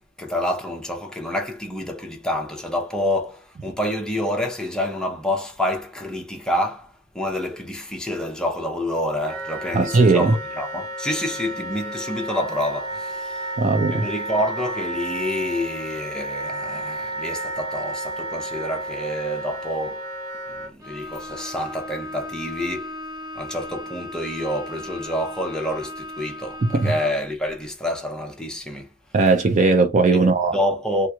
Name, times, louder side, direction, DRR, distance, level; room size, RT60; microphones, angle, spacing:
voice 1, 0.0-13.6 13.9-20.1 20.5-23.0 23.4-28.9 30.1-31.1, left 1 dB, 5° left, 0.7 m, -28 dB
Wind instrument woodwind instrument, 9.3-20.7, right 1 dB, 70° right, 0.9 m, -32 dB
voice 2, 9.7-10.3 13.6-14.1 26.6-26.9 29.1-30.6, right 3 dB, 35° right, 0.4 m, -18 dB
Bowed string instrument, 20.8-27.3, left 1 dB, 15° right, 1.1 m, -37 dB
3.4 x 3.0 x 2.3 m
head